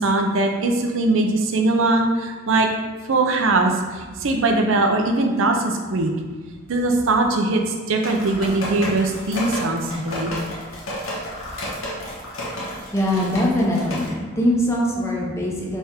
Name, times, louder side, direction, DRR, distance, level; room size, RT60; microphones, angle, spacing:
voice 1, 0.0-2.7 3.1-6.1 6.7-10.3, right 2 dB, 75° right, 3 dB, 0.6 m, -21 dB
sound 1, 8.0-14.1, equal, 75° left, 1.0 m, -31 dB
voice 2, 12.9-15.8, left 1 dB, 15° left, -3 dB, 0.7 m, -22 dB
3.5 x 3.4 x 4.2 m, 1.4 s
head